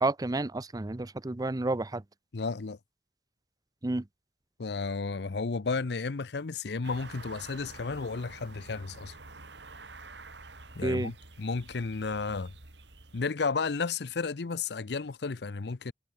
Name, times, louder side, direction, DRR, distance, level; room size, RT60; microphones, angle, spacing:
voice 1, 0.0-2.0 3.8-4.1 10.8-11.1, right 2 dB, 20° right, 0.6 m, -30 dB
voice 2, 2.3-2.8 4.6-9.2 10.7-12.5 13.1-15.9, left 4 dB, 70° left, 0.7 m, -33 dB
sound 1, 6.8-13.3, right 3 dB, 85° right, 4.0 m, -49 dB
head